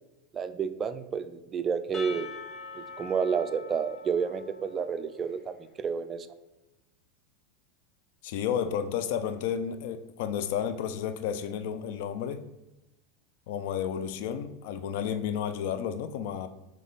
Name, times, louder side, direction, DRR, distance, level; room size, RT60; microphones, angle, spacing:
voice 1, 0.3-2.3 2.7-6.3, right 6 dB, 30° right, 10 dB, 0.3 m, -30 dB
Percussion / Church bell, 1.9-5.6, left 4 dB, 20° left, 0.6 m, -44 dB
voice 2, 8.2-12.4 13.5-16.5, left 8 dB, 70° left, 9 dB, 0.3 m, -32 dB
3.4 x 3.2 x 3.9 m, 0.96 s
supercardioid pair, 115°, 0 cm